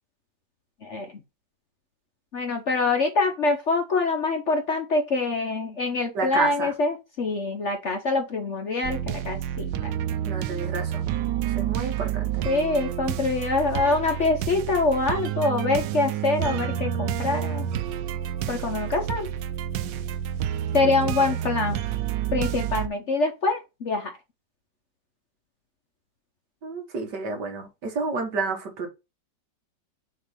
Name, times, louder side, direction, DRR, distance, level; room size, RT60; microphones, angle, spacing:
voice 1, 0.8-1.1 2.3-9.9 12.4-17.6 18.5-19.3 20.7-21.8 22.3-24.1, left 3 dB, 50° left, 0.9 m, -25 dB
voice 2, 6.1-6.7 10.2-11.1 11.5-12.3 20.8-21.0 21.4-21.6 26.6-28.9, right 4 dB, 70° right, 2.1 m, -30 dB
sound 1, 8.8-22.9, right 10 dB, 90° right, 1.3 m, -29 dB
6.5 x 3.0 x 5.5 m
omnidirectional pair, 1.9 m